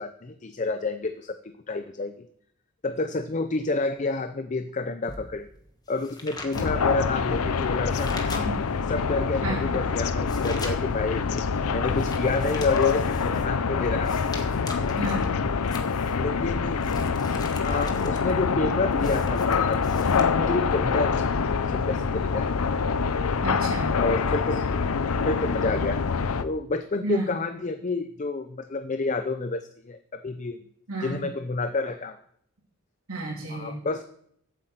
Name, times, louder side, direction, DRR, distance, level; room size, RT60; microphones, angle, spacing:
voice 1, 0.0-2.3 2.8-5.5 5.9-8.6 8.9-11.2 11.7-14.2 16.1-16.8 17.6-21.4 21.7-22.5 24.0-24.7 25.2-26.0 26.4-30.6 31.0-32.2 33.5-34.0, left 3 dB, 35° left, 9 dB, 0.5 m, -29 dB
sound 1, 5.1-8.9 9.4-20.2, left 2 dB, 20° left, 1.4 m, -43 dB
sound 2, 6.5-26.4, left 5 dB, 85° left, 0.6 m, -25 dB
voice 2, 15.0-15.3 23.4-24.0 27.0-27.3 30.9-31.2 33.1-33.8, right 2 dB, 80° right, -3 dB, 3.2 m, -31 dB
8.2 x 7.9 x 7.7 m, 0.69 s
head